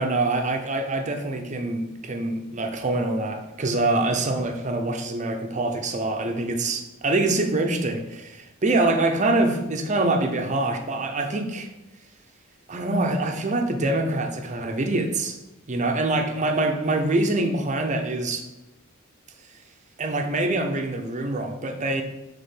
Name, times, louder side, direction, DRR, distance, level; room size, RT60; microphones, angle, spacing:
voice 1, 0.0-11.7 12.7-15.4 15.7-18.4 20.0-22.0, right 2 dB, 35° right, 5 dB, 0.7 m, -25 dB
5.4 x 3.7 x 5.8 m, 0.97 s
head